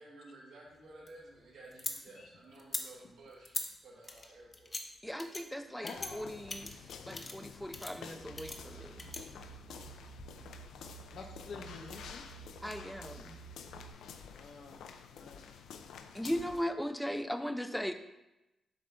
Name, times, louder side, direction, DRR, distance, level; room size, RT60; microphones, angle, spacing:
voice 1, 0.0-4.8, right 2 dB, 90° right, -5 dB, 1.9 m, -54 dB
sound 1, 0.7-2.0 2.6-2.8 3.4-3.7 4.0-4.8 5.2-5.4 5.8-6.1 6.5-7.4 7.7-7.9 8.4-9.2, left 3 dB, 30° left, 0.7 m, -40 dB
voice 2, 5.0-5.9 6.1-6.7 7.1-9.1 12.6-13.4 16.1-17.9, equal, 5° left, 8 dB, 0.4 m, -38 dB
voice 3, 5.8-6.4 11.1-12.3 14.3-14.9 15.1-15.4, left 4 dB, 65° left, 3 dB, 0.9 m, -48 dB
sound 2, 5.9-16.6, left 6 dB, 85° left, 0.4 m, -50 dB
sound 3, 8.1-13.9, right 9 dB, 55° right, 1.0 m, -53 dB
7.1 x 3.8 x 3.4 m, 0.95 s
cardioid pair, 85°, 0 cm